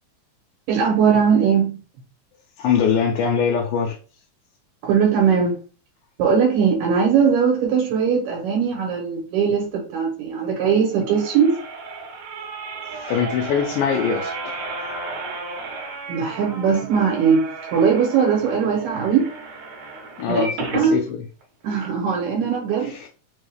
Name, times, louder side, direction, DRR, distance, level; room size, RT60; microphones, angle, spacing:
voice 1, 0.7-1.8 4.8-5.6 6.2-11.5 16.1-19.3 20.3-20.5 20.7-21.0 21.6-22.9, right 6 dB, 85° right, 2.6 m, -20 dB
voice 2, 2.6-4.0 12.9-14.6 20.2-21.2 22.8-23.1, left 7 dB, 80° left, 2.0 m, -22 dB
sound 1, 10.8-20.9 21.4-21.5 21.8-21.9, right 3 dB, 65° right, 2.4 m, -33 dB
5.4 x 2.2 x 3.3 m
omnidirectional pair, 3.9 m